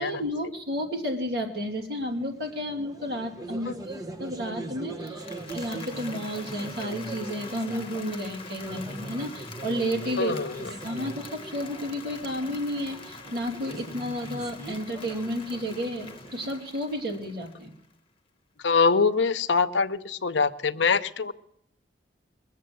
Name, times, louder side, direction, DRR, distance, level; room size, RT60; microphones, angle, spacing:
voice 1, 0.0-17.7, equal, 60° right, 1 dB, 3.0 m, -32 dB
sound 1, 1.7-16.6, right 2 dB, 20° right, 1.0 m, -41 dB
Applause, 4.9-17.9, left 5 dB, 30° left, 1.1 m, -45 dB
voice 2, 10.2-10.5 18.6-21.3, left 5 dB, 80° left, 12 dB, 0.7 m, -24 dB
22.0 x 7.5 x 7.8 m, 0.78 s
head